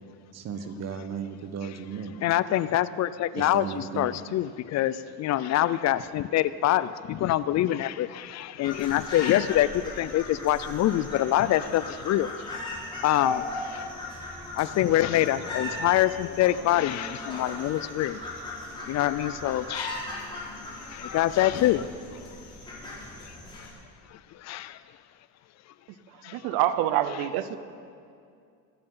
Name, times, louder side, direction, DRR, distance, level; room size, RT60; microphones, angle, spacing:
voice 1, 0.3-2.1 3.4-4.2, right 6 dB, 50° right, 9 dB, 1.2 m, -35 dB
voice 2, 2.2-12.5 13.0-13.9 14.5-18.2 18.8-20.1 20.5-21.9 23.2-23.7 24.1-24.8 26.2-26.4, left 13 dB, 50° left, 16 dB, 0.5 m, -25 dB
sound 1, 8.6-23.7, left 2 dB, 15° left, 4.1 m, -38 dB
voice 3, 26.2-27.6, right 12 dB, 85° right, 12 dB, 0.9 m, -26 dB
23.5 x 8.8 x 5.6 m, 2.3 s
cardioid pair, 140°, 35 cm